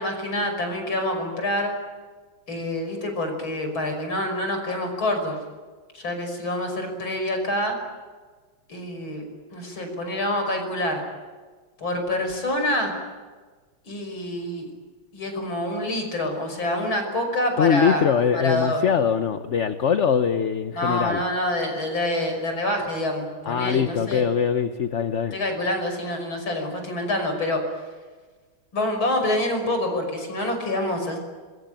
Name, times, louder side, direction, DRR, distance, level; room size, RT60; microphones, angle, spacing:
voice 1, 0.0-1.7 2.5-5.3 5.9-7.8 8.7-9.2 9.5-11.0 11.8-12.9 13.8-14.7 15.1-18.0 18.3-18.8 20.7-24.2 25.3-27.6 28.7-31.2, left 1 dB, 85° left, 4 dB, 6.6 m, -26 dB
voice 2, 17.6-21.2 23.5-25.3, left 7 dB, 50° left, 9 dB, 1.0 m, -22 dB
26.0 x 23.0 x 9.2 m, 1.4 s
omnidirectional pair, 2.2 m